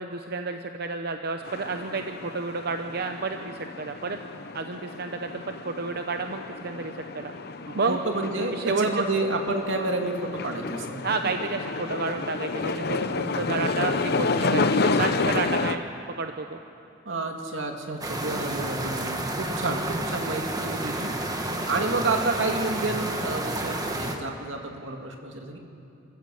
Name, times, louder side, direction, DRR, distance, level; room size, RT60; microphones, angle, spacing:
voice 1, 0.0-4.2 4.5-7.3 7.7-8.0 8.5-8.9 11.0-15.9 16.2-16.6 21.4-21.8, right 4 dB, 55° right, 6 dB, 0.8 m, -31 dB
sound 1, 1.4-15.8, left 3 dB, 55° left, 0.8 m, -30 dB
voice 2, 7.7-11.3 13.3-13.5 17.1-21.1 21.7-25.6, right 2 dB, 85° right, 3 dB, 2.3 m, -30 dB
sound 2, 18.0-24.2, right 1 dB, 20° right, 1.6 m, -30 dB
28.5 x 14.0 x 7.7 m, 2.8 s
head